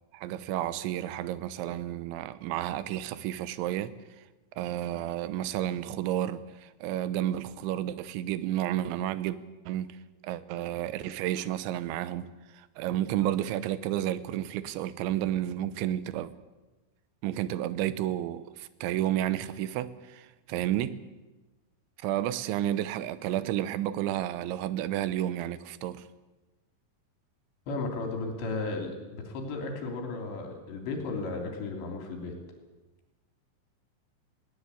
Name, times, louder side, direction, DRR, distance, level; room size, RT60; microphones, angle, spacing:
voice 1, 0.1-3.9 4.6-9.4 9.7-10.0 10.2-12.3 12.5-16.3 17.2-21.0 22.0-26.0, right 12 dB, 75° right, 3.0 m, -31 dB
voice 2, 27.7-32.3, left 3 dB, 65° left, 5.2 m, -34 dB
20.5 x 18.0 x 8.3 m
omnidirectional pair, 5.8 m